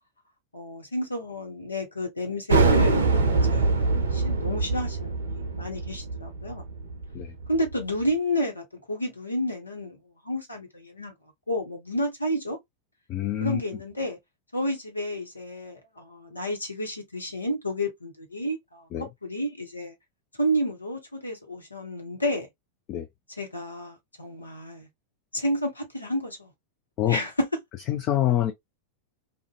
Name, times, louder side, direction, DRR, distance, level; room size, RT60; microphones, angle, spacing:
voice 1, 0.5-6.6 7.5-11.1 11.5-12.6 13.4-14.2 14.5-18.9 19.2-19.9 20.4-22.5 23.4-24.9 25.3-26.5 27.1-27.5, equal, 80° left, 0.9 m, -30 dB
sound 1, 2.5-7.8, right 3 dB, 70° right, 0.6 m, -24 dB
voice 2, 13.1-13.6 18.9-19.1 22.9-23.1 27.0-27.2 27.9-28.5, left 13 dB, 35° left, 0.4 m, -25 dB
2.5 x 2.1 x 2.4 m
figure-of-eight pair, 90°, 0 cm